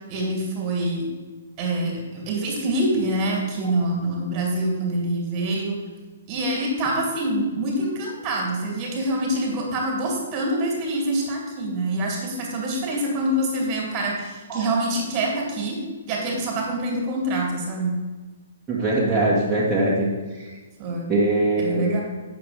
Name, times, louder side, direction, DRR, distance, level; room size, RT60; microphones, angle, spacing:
voice 1, 0.1-1.1 1.6-5.8 6.3-15.8 16.1-18.0 20.8-21.1 21.6-22.0, right 1 dB, 30° right, -1 dB, 2.6 m, -25 dB
voice 2, 18.7-20.5 21.1-21.9, right 2 dB, 10° right, -9 dB, 2.0 m, -22 dB
8.1 x 6.5 x 5.1 m, 1.3 s
figure-of-eight pair, 120°, 0 cm